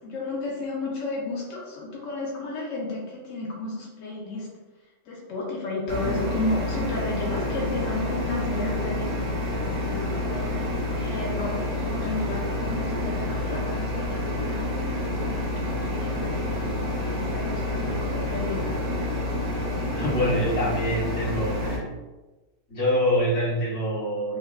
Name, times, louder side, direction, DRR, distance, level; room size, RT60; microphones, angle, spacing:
voice 1, 0.0-4.5 5.1-9.4 9.6-10.7 10.9-15.1 15.7-18.7, left 2 dB, 90° left, -3 dB, 1.0 m, -33 dB
sound 1, 5.9-21.8, left 1 dB, 70° right, 1.0 m, -28 dB
voice 2, 19.9-21.8 22.7-24.4, equal, 60° left, -6 dB, 1.2 m, -25 dB
3.4 x 2.2 x 2.2 m, 1.2 s
omnidirectional pair, 1.3 m